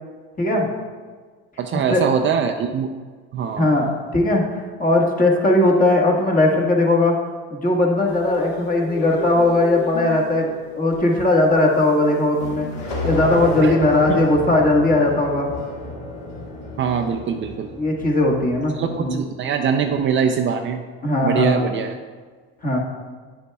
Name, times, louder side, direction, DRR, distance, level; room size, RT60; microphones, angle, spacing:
voice 1, 0.4-0.7 1.9-2.0 3.6-7.1 7.5-12.7 13.0-15.5 17.7-19.2 21.0-21.7 22.6-22.8, left 2 dB, 25° left, -1 dB, 1.5 m, -18 dB
voice 2, 1.6-2.9 3.3-3.7 13.6-13.7 14.1-14.2 16.8-17.7 18.8-20.8 21.2-22.0, right 7 dB, 35° right, 5 dB, 0.5 m, -22 dB
sound 1, 8.1-13.7, left 6 dB, 90° left, 0.9 m, -36 dB
sound 2, 12.4-18.8, left 1 dB, 50° left, 1.9 m, -30 dB
9.5 x 6.8 x 2.3 m, 1.5 s
supercardioid pair, 95°, 33 cm